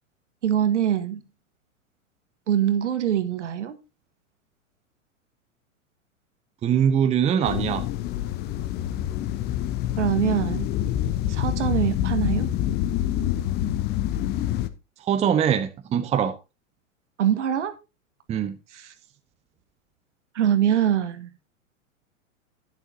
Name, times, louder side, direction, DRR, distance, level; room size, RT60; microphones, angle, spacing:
voice 1, 0.4-1.2 2.5-3.8 10.0-10.7 11.3-12.5 17.2-17.7 18.7-18.9 20.3-21.5, right 10 dB, 60° right, 1.7 m, -24 dB
voice 2, 6.6-7.8 15.1-16.4 18.3-18.6, right 8 dB, 15° right, 0.8 m, -22 dB
sound 1, 7.4-14.7, left 12 dB, 25° left, 0.8 m, -26 dB
11.0 x 10.5 x 2.8 m
figure-of-eight pair, 100°, 40 cm